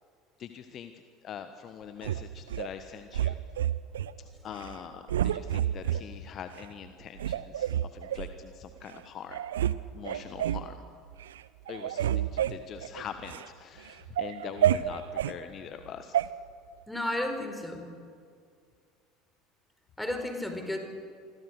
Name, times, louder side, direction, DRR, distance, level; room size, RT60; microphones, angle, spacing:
voice 1, 0.4-0.9 1.2-3.4 4.2-9.4 9.9-10.8 11.7-16.2, left 8 dB, 40° left, 9 dB, 1.3 m, -43 dB
sound 1, 2.0-2.7 3.1-4.1 4.5-4.8 5.1-6.0 6.6-6.7 7.2-8.3 8.9-9.0 9.3-9.8 10.0-10.7 11.1-11.4 11.7-13.5 13.9-15.4 16.1-16.3, right 11 dB, 70° right, 0.7 m, -29 dB
voice 2, 16.9-17.9 20.0-20.8, left 1 dB, 5° left, 5 dB, 4.7 m, -33 dB
26.5 x 25.5 x 6.6 m, 2.3 s
figure-of-eight pair, 65°, 0 cm